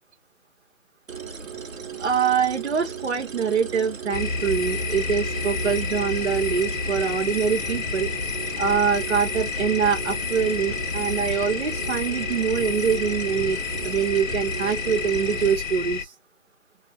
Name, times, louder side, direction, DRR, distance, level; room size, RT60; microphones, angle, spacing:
sound 1, 1.1-15.5, right 7 dB, 85° right, 0.9 m, -37 dB
voice 1, 2.0-8.1 8.6-16.1, right 6 dB, 60° right, 0.7 m, -24 dB
sound 2, 4.1-16.0, left 5 dB, 75° left, 0.6 m, -30 dB
2.4 x 2.3 x 2.7 m
figure-of-eight pair, 165°, 39 cm